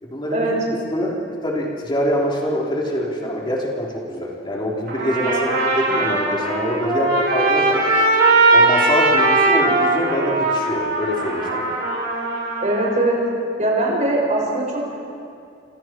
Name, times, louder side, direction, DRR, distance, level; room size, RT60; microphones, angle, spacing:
voice 1, 0.0-0.5 0.9-7.9 8.5-11.7, equal, 25° left, -3 dB, 3.8 m, -24 dB
Trumpet, 4.9-12.9, right 2 dB, 60° right, 7.1 m, -19 dB
voice 2, 12.6-13.2 13.6-15.0, right 1 dB, 40° right, -2 dB, 6.1 m, -21 dB
27.5 x 27.5 x 4.6 m, 2.5 s
head